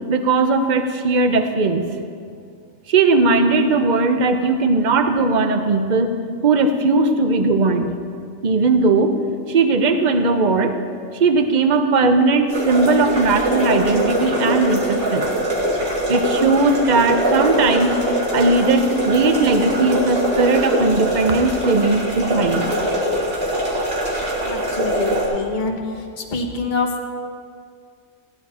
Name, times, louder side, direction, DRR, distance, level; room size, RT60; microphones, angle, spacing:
voice 1, 0.1-1.8 2.9-6.1 6.4-7.9 8.4-9.1 9.5-10.8 11.1-15.3 16.1-17.9 18.3-22.7, right 3 dB, 40° right, 7 dB, 0.8 m, -18 dB
sound 1, 12.5-25.2, right 1 dB, 90° right, 3.1 m, -22 dB
voice 2, 24.4-25.8 26.3-27.0, left 4 dB, 40° left, 1 dB, 1.2 m, -25 dB
16.5 x 10.5 x 4.3 m, 2.3 s
omnidirectional pair, 1.4 m